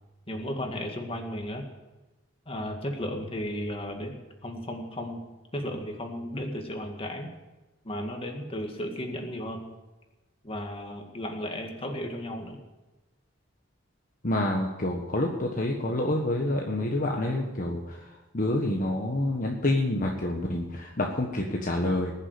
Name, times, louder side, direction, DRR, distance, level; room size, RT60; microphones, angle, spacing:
voice 1, 0.3-1.6 2.5-5.2 5.5-7.3 7.8-9.7 10.4-12.6, equal, 30° left, 3 dB, 2.1 m, -34 dB
voice 2, 14.2-18.0 18.3-22.1, left 1 dB, 45° left, 0 dB, 1.4 m, -27 dB
20.0 x 7.4 x 8.3 m, 1.1 s
head